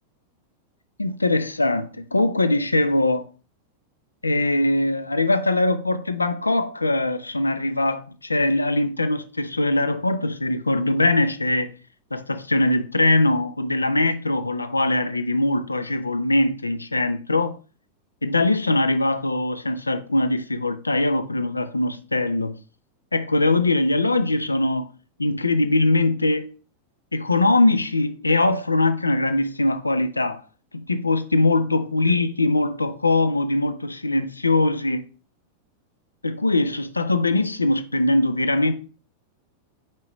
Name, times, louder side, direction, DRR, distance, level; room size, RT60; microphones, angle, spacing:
voice 1, 1.0-3.3 4.2-11.7 12.1-17.6 18.2-22.6 23.1-24.9 25.2-26.5 27.1-30.4 30.7-35.1 36.2-38.7, left 2 dB, 80° left, 0.5 m, -22 dB
7.3 x 4.8 x 3.1 m
figure-of-eight pair, 90°, 0 cm